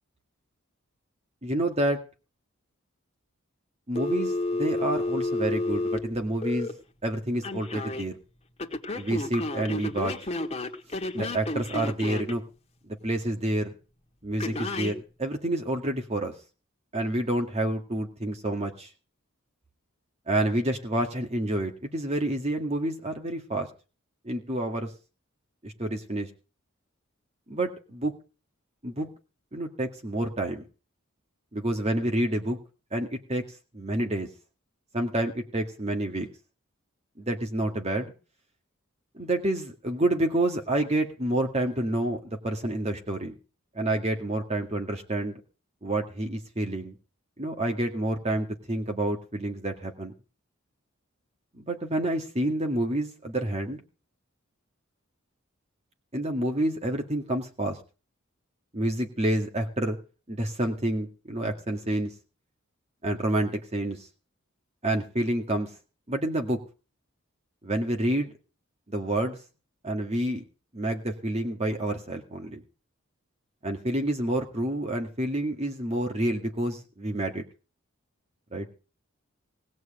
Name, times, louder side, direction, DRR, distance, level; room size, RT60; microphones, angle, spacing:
voice 1, 1.4-2.0 3.9-6.7 7.0-8.1 8.9-10.1 11.1-12.4 12.9-13.7 14.2-16.3 16.9-18.9 20.3-23.7 24.2-24.9 25.6-26.3 27.5-28.1 28.8-29.1 29.5-30.6 31.5-32.6 32.9-33.4 33.7-34.3 34.9-36.3 37.2-38.1 39.1-43.3 43.7-45.4 45.8-46.9 47.4-50.1 51.5-53.8 56.1-57.8 58.7-60.0 60.3-62.1 63.0-64.1 64.8-65.7 66.1-66.6 67.6-68.3 68.9-69.4 69.8-70.4 70.7-72.6 73.6-77.4 78.5-78.7, right 1 dB, 30° right, 3 dB, 2.1 m, -28 dB
Telephone, 4.0-6.7 7.4-8.0 8.6-12.3 14.4-14.9, left 2 dB, 30° left, 1.7 m, -31 dB
18.5 x 6.3 x 9.0 m, 0.35 s
head